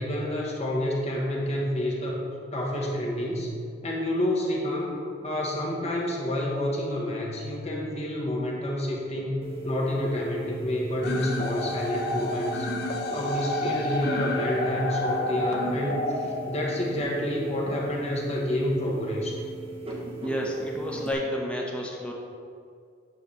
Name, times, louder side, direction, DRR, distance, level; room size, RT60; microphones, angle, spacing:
voice 1, 0.0-2.2 2.5-3.5 3.8-4.9 5.2-12.7 13.1-19.4, left 1 dB, 30° left, -3 dB, 1.2 m, -29 dB
sound 1, 9.4-21.1, right 3 dB, 30° right, 0.9 m, -38 dB
sound 2, 11.0-17.0, left 1 dB, 50° left, 0.9 m, -30 dB
voice 2, 20.2-22.1, equal, 5° left, -2 dB, 1.0 m, -30 dB
9.1 x 3.4 x 6.9 m, 2.3 s
head